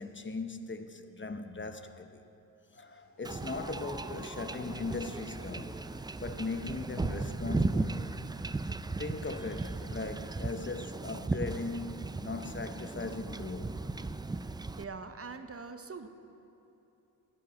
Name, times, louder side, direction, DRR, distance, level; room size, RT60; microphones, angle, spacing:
voice 1, 0.0-2.2 2.7-5.8 6.2-8.1 9.0-13.7, left 3 dB, 30° left, 0.7 m, -39 dB
Laughter / Crowd, 2.6-8.4, left 1 dB, 60° left, 2.4 m, -56 dB
Wind / Ocean / Boat Water vehicle, 3.2-14.8, right 3 dB, 10° right, 0.4 m, -36 dB
sound 1, 3.3-3.9 4.6-5.0 6.3-6.6 7.7-8.0 9.0-9.4, right 4 dB, 75° right, 1.6 m, -53 dB
voice 2, 14.8-16.1, right 4 dB, 35° right, 0.8 m, -43 dB
11.0 x 8.5 x 8.5 m
cardioid pair, 60°, 40 cm